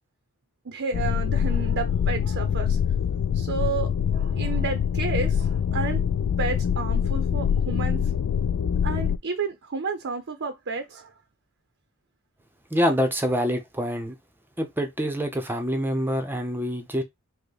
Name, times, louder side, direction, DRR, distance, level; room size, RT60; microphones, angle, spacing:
voice 1, 0.6-2.8 3.3-6.1 6.3-8.1 8.8-11.1, right 5 dB, 60° right, 0.6 m, -31 dB
sound 1, 0.9-9.2, left 8 dB, 80° left, 0.3 m, -24 dB
voice 2, 12.7-14.1 14.6-17.0, equal, 10° right, 0.7 m, -26 dB
5.4 x 2.2 x 4.0 m
head